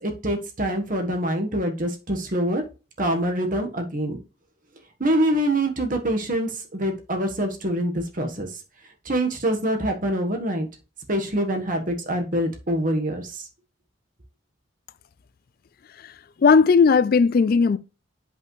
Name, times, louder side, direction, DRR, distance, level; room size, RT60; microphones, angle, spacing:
voice 1, 0.0-2.6 3.0-4.2 5.0-8.5 9.1-10.7 11.1-13.3, right 1 dB, 45° right, 1.4 m, -25 dB
voice 2, 16.0-17.8, left 5 dB, 50° left, 0.4 m, -17 dB
8.5 x 5.4 x 3.2 m
head